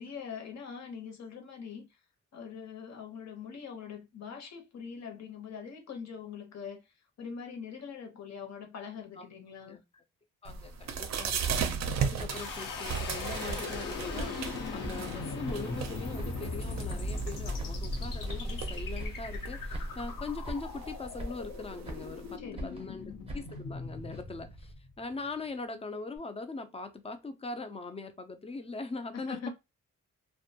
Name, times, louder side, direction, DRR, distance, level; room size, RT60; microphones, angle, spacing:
voice 1, 0.0-1.9 2.3-6.9 7.2-9.8 22.4-23.0 29.1-29.5, left 6 dB, 55° left, 0.8 m, -43 dB
voice 2, 9.6-10.0 10.4-29.5, left 3 dB, 20° left, 0.3 m, -41 dB
sound 1, 10.4-22.3, right 6 dB, 60° right, 0.4 m, -38 dB
sound 2, 11.9-15.2 15.4-16.6 16.9-18.7 19.0-19.5 19.7-20.2 20.4-20.9 21.2-22.2 22.6-24.7, right 1 dB, 20° right, 0.6 m, -43 dB
sound 3, 12.3-25.2, left 2 dB, 85° left, 0.8 m, -38 dB
2.5 x 2.2 x 2.7 m
wide cardioid pair, 145°, 32 cm